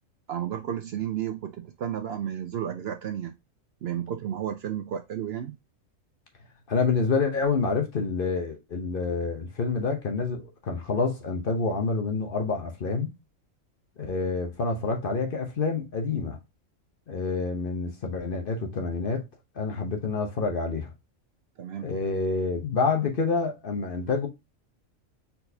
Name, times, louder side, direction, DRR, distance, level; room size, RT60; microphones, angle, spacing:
voice 1, 0.3-3.3 3.8-5.5 21.6-21.9, right 10 dB, 65° right, 0.7 m, -32 dB
voice 2, 6.7-13.1 14.0-16.4 17.1-19.2 19.6-20.9 21.8-24.3, left 4 dB, 50° left, 0.9 m, -27 dB
4.3 x 4.1 x 2.7 m
omnidirectional pair, 1.4 m